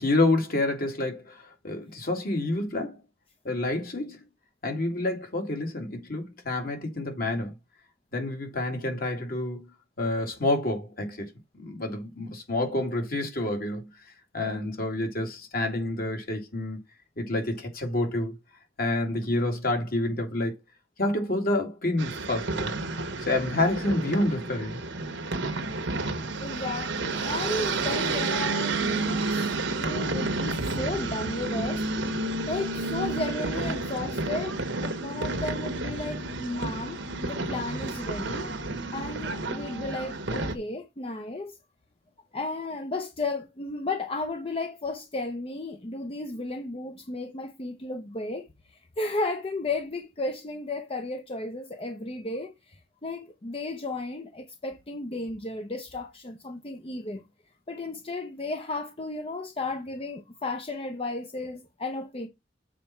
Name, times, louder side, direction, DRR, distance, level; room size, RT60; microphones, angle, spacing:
voice 1, 0.0-3.0 3.4-4.2 4.6-7.5 8.1-9.7 10.0-13.9 14.3-16.8 17.2-18.3 18.8-20.5 21.0-22.8 23.2-24.8, left 2 dB, 55° left, 2.4 m, -28 dB
sound 1, 22.0-40.6, right 3 dB, 75° right, 1.3 m, -30 dB
voice 2, 26.4-31.8 32.5-38.5 38.9-41.6 42.3-57.2 57.7-62.3, left 2 dB, 30° left, 0.7 m, -34 dB
7.5 x 4.2 x 5.8 m
head